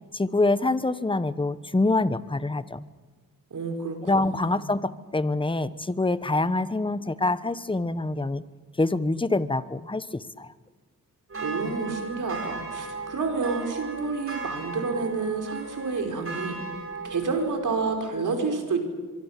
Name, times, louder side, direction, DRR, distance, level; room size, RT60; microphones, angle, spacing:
voice 1, 0.1-2.8 4.0-8.4 8.8-10.5, left 2 dB, 15° left, 15 dB, 1.1 m, -25 dB
voice 2, 3.5-4.6 11.4-16.6 17.0-18.8, right 4 dB, 65° right, 3 dB, 5.2 m, -29 dB
sound 1, 11.3-18.0, right 4 dB, 40° right, 6.3 m, -37 dB
24.5 x 23.5 x 7.5 m, 1.4 s
cardioid pair, 80°, 34 cm